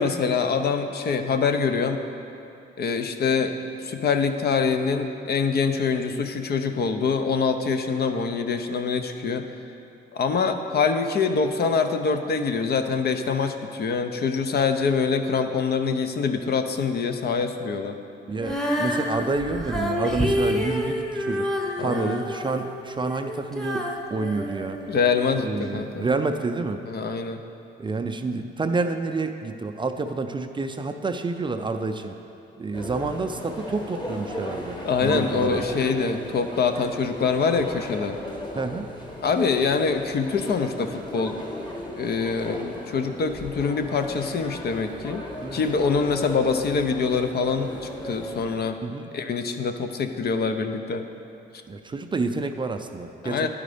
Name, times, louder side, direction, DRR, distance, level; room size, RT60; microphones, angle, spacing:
voice 1, 0.0-2.0 2.8-3.5 3.8-9.4 10.1-18.0 21.8-22.2 24.9-26.1 26.9-27.4 34.8-38.2 39.2-41.4 41.9-45.3 45.5-48.8 49.1-51.0 53.2-53.5, left 5 dB, 55° left, 7 dB, 0.6 m, -24 dB
voice 2, 18.3-21.5 21.8-24.8 25.4-26.8 27.8-32.1 32.6-35.7 38.5-38.9 45.4-45.6 48.8-49.1 51.7-53.5, right 3 dB, 25° right, 6 dB, 0.4 m, -28 dB
Female singing, 18.4-25.4 26.0-26.1, equal, ahead, 0.9 m, -28 dB
sound 1, 32.7-48.6, left 1 dB, 20° left, 1.3 m, -37 dB
11.0 x 5.0 x 5.0 m, 2.7 s
cardioid pair, 90°, 20 cm